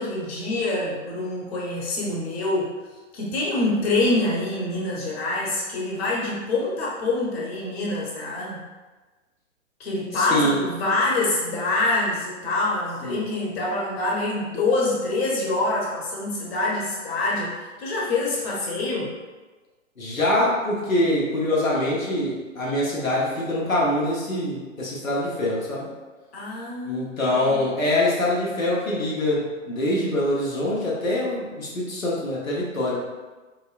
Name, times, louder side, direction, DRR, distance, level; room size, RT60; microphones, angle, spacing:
voice 1, 0.0-2.7 3.1-8.6 9.8-19.1 26.3-28.0, left 2 dB, 50° left, -4 dB, 1.1 m, -26 dB
voice 2, 10.1-10.6 13.0-13.2 20.0-25.9 26.8-33.0, left 1 dB, 90° left, -5 dB, 1.1 m, -24 dB
5.3 x 2.1 x 2.4 m, 1.3 s
figure-of-eight pair, 115°, 39 cm